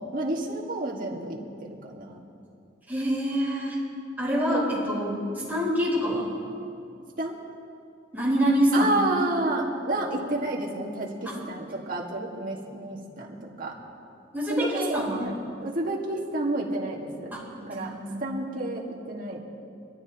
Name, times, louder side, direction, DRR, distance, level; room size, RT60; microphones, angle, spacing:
voice 1, 0.0-2.2 4.5-4.8 7.2-7.3 8.7-13.7 14.5-15.3 15.6-17.3 17.7-17.9 18.2-19.4, right 2 dB, 50° right, -2 dB, 2.0 m, -30 dB
voice 2, 2.9-3.8 4.2-5.2 5.5-6.3 8.1-9.0 10.0-10.1 11.2-11.4 14.3-15.2 17.3-18.2, equal, 10° right, -6 dB, 4.5 m, -26 dB
24.5 x 14.0 x 3.1 m, 2.6 s
head